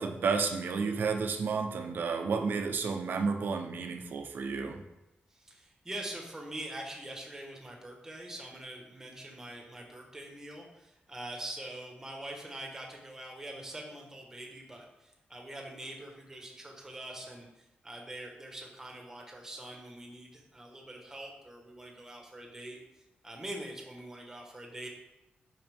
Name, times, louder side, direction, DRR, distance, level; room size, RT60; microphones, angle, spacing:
voice 1, 0.0-4.8, right 5 dB, 65° right, 5 dB, 0.9 m, -31 dB
voice 2, 5.3-17.5 17.8-22.8 23.2-24.9, right 1 dB, 15° right, 0 dB, 1.5 m, -44 dB
8.8 x 5.9 x 3.6 m, 0.95 s
wide cardioid pair, 160°, 4 cm